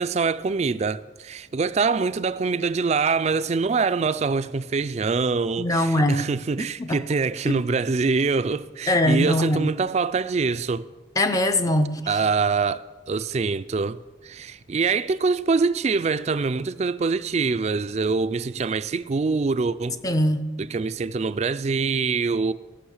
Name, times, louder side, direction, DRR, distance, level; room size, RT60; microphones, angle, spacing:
voice 1, 0.0-10.9 12.1-14.0 14.2-20.0 20.6-22.5, right 4 dB, 35° right, 0.3 m, -24 dB
voice 2, 5.6-6.3 6.8-7.0 7.5-7.6 8.9-9.7 11.2-12.1 20.0-20.4, left 1 dB, 20° left, 0.5 m, -22 dB
15.0 x 6.3 x 6.5 m
head